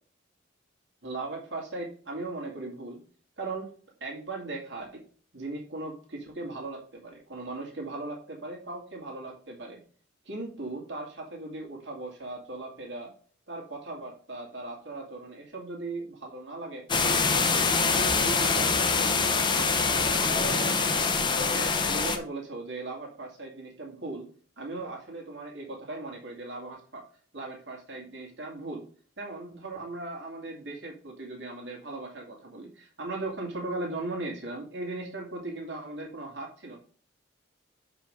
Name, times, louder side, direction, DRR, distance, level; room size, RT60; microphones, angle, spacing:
voice 1, 1.0-3.0 3.4-3.7 4.0-5.0 5.3-9.8 10.2-13.1 13.5-17.5 17.8-19.2 19.5-20.9 21.4-24.3 24.6-27.0 27.3-28.8 29.2-36.8, right 2 dB, 65° right, 0 dB, 2.4 m, -38 dB
sound 1, 16.9-22.2, left 4 dB, 25° left, 0.8 m, -24 dB
6.5 x 5.4 x 5.1 m, 0.42 s
head